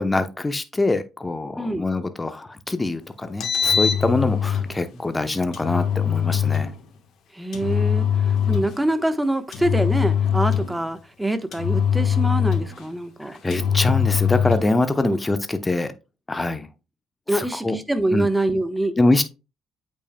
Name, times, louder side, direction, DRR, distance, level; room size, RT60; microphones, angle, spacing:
voice 1, 0.0-6.7 13.2-15.9 16.3-16.7 17.3-17.8 18.1-18.3 19.0-19.2, left 2 dB, 20° left, 10 dB, 0.8 m, -24 dB
voice 2, 1.5-1.9 7.3-13.3 15.0-15.2 17.3-19.0, right 1 dB, 10° right, 10 dB, 1.1 m, -25 dB
Engine, 3.2-4.7 5.5-6.7 7.5-8.8 9.5-10.8 11.5-12.9 13.5-14.7, left 8 dB, 65° left, 1.3 m, -22 dB
8.3 x 5.5 x 2.2 m, 0.29 s
hypercardioid pair, 50°, 0 cm